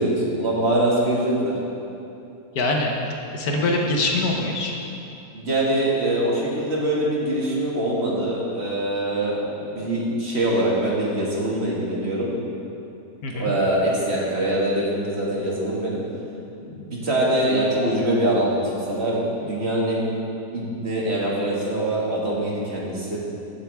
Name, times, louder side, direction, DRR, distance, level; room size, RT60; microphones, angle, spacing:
voice 1, 0.0-1.6 5.3-12.3 13.3-16.0 16.6-20.1 20.5-23.2, right 1 dB, 45° right, -5 dB, 2.2 m, -23 dB
voice 2, 2.5-2.9 3.3-4.7 13.2-13.5, left 2 dB, 75° left, 0 dB, 1.6 m, -23 dB
14.5 x 8.3 x 3.5 m, 2.7 s
omnidirectional pair, 1.6 m